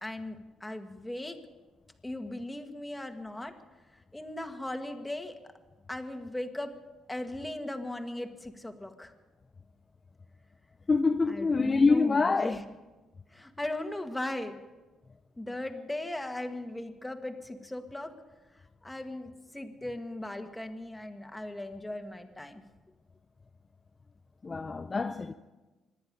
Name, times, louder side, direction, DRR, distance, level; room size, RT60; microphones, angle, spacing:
voice 1, 0.0-1.4 2.0-3.5 4.1-5.4 5.9-6.7 7.1-9.1 11.3-12.6 13.3-14.6 15.4-18.1 18.8-22.6, left 1 dB, 10° left, 1.7 m, -38 dB
voice 2, 10.9-12.6 24.4-25.3, left 4 dB, 30° left, 0.6 m, -25 dB
25.0 x 10.5 x 5.4 m
cardioid pair, 90°, 0 cm